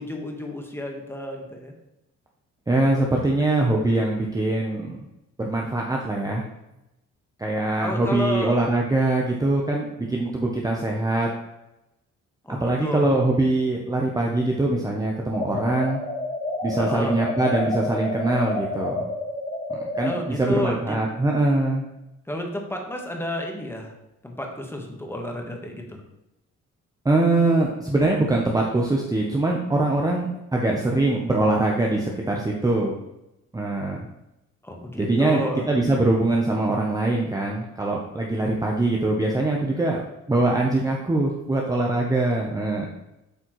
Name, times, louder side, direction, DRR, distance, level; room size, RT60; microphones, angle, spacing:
voice 1, 0.0-1.7 7.8-8.6 12.4-13.1 16.8-17.2 20.0-21.0 22.3-23.9 24.2-26.0 34.6-35.7, left 1 dB, 10° left, 1 dB, 1.3 m, -31 dB
voice 2, 2.7-5.0 5.4-6.4 7.4-11.3 12.6-16.0 16.6-19.1 19.8-21.8 27.0-30.3 30.5-32.9 33.5-34.1 35.0-35.4 35.7-40.0 40.3-42.9, right 2 dB, 10° right, -1 dB, 0.7 m, -23 dB
sound 1, 15.3-20.2, left 2 dB, 30° left, 2.0 m, -29 dB
7.9 x 4.3 x 3.1 m, 0.90 s
cardioid pair, 90°, 30 cm